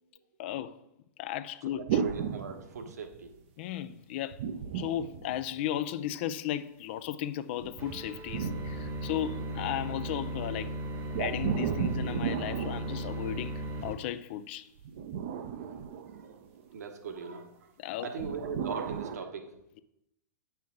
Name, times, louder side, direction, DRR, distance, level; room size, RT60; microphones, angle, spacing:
voice 1, 0.4-0.8 1.2-2.0 3.6-4.5 4.7-10.7 11.2-14.7 17.8-18.1, left 11 dB, 40° left, 0.4 m, -35 dB
voice 2, 1.7-3.4 9.3-9.6 15.5-16.5 16.7-17.7 18.0-19.5, right 5 dB, 60° right, 1.1 m, -41 dB
sound 1, 1.9-3.3 4.3-5.9 7.6-9.6 11.1-13.7 14.8-16.7 18.2-19.2, right 8 dB, 40° right, 0.6 m, -35 dB
sound 2, 7.8-13.9, right 1 dB, 25° right, 1.0 m, -37 dB
9.3 x 5.6 x 3.7 m
figure-of-eight pair, 105°, 10 cm